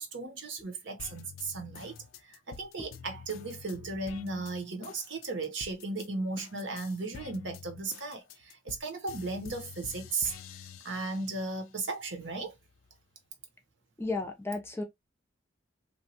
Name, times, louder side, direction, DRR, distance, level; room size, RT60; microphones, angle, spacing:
voice 1, 0.0-2.0 2.2-10.3 10.8-12.5, right 3 dB, 65° right, 0.8 m, -36 dB
sound 1, 1.0-6.1 6.4-11.6 12.0-13.0, left 6 dB, 80° left, 0.4 m, -48 dB
voice 2, 14.0-14.8, left 3 dB, 10° left, 0.5 m, -34 dB
3.0 x 2.2 x 2.8 m
head